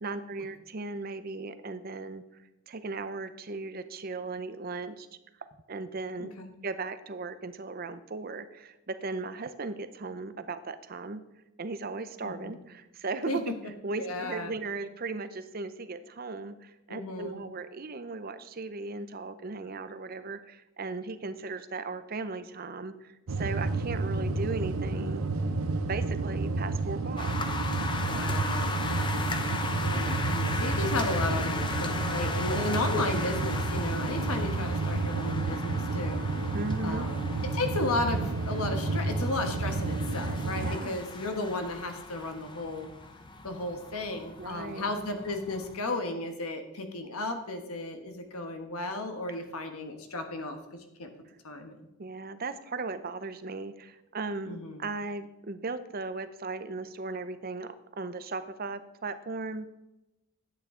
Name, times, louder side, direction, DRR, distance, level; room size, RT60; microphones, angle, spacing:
voice 1, 0.0-2.2 2.7-5.1 5.7-6.3 6.6-11.2 11.6-13.5 13.8-25.2 25.9-27.3 36.5-37.1 40.6-40.9 44.4-44.9 52.0-59.7, right 3 dB, 45° right, 11 dB, 0.6 m, -37 dB
voice 2, 12.2-12.6 13.3-13.4 14.0-14.5 16.9-17.4 28.0-28.8 29.8-36.6 36.8-42.9 43.4-50.6 51.0-51.1 51.4-51.9 54.5-54.8, left 2 dB, 85° left, 6 dB, 1.3 m, -34 dB
sound 1, 23.3-40.8, right 3 dB, 80° right, 0.6 m, -30 dB
sound 2, 27.2-45.8, left 3 dB, 20° left, 0.7 m, -37 dB
10.5 x 8.9 x 3.7 m, 0.95 s
head